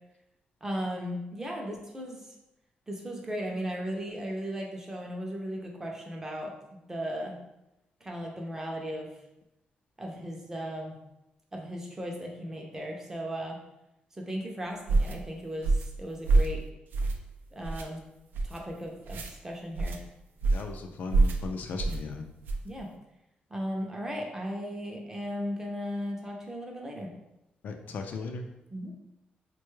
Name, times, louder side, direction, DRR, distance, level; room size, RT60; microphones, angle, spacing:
voice 1, 0.6-2.2 2.9-7.4 8.0-9.1 10.0-11.0 11.5-13.6 14.2-16.6 17.5-18.0 18.4-20.0 22.6-22.9 23.5-27.1 28.7-28.9, equal, 15° right, 0 dB, 0.5 m, -36 dB
sound 1, 14.9-15.2 15.6-15.9 16.2-16.6 16.9-17.3 17.6-17.8 18.3-18.6 19.0-19.3 19.7-20.0 20.4-20.7 21.1-21.4 21.8-22.0 22.4-22.7, right 3 dB, 80° right, 0.4 m, -25 dB
voice 2, 20.5-22.2 27.6-28.4, left 4 dB, 60° left, 4 dB, 0.3 m, -37 dB
3.6 x 2.2 x 3.1 m, 0.89 s
wide cardioid pair, 165°, 3 cm